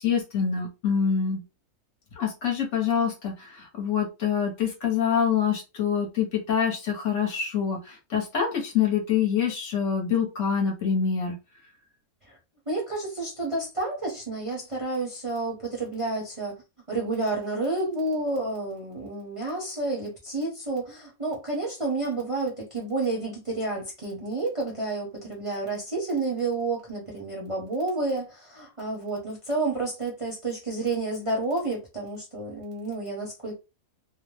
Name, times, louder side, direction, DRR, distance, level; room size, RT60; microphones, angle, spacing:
voice 1, 0.0-1.4 2.2-11.4, left 7 dB, 60° left, 1.1 m, -26 dB
voice 2, 12.7-16.6 16.9-33.6, right 2 dB, 30° right, 0.7 m, -30 dB
2.7 x 2.0 x 3.1 m
omnidirectional pair, 1.5 m